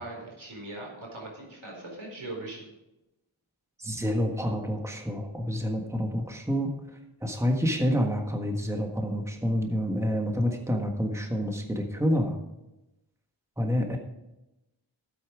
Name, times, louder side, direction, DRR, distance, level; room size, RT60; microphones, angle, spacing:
voice 1, 0.0-2.6, right 2 dB, 80° right, -1 dB, 4.4 m, -40 dB
voice 2, 3.8-6.7 7.2-12.4 13.6-14.0, equal, 5° right, 3 dB, 1.5 m, -28 dB
12.5 x 8.5 x 4.8 m, 0.94 s
wide cardioid pair, 55°, 47 cm